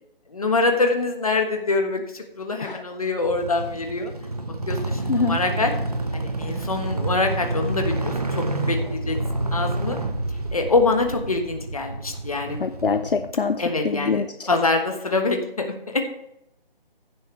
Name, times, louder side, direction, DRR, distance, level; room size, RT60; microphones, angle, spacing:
voice 1, 0.3-4.1 4.7-5.7 6.1-9.2 9.5-10.0 10.5-12.6 13.6-16.1, left 3 dB, 35° left, 4 dB, 1.4 m, -24 dB
sound 1, 3.2-13.3, right 2 dB, 40° right, 1.1 m, -28 dB
voice 2, 12.6-14.5, left 5 dB, 65° left, 9 dB, 0.7 m, -24 dB
15.0 x 7.0 x 3.3 m, 0.82 s
figure-of-eight pair, 180°, 30 cm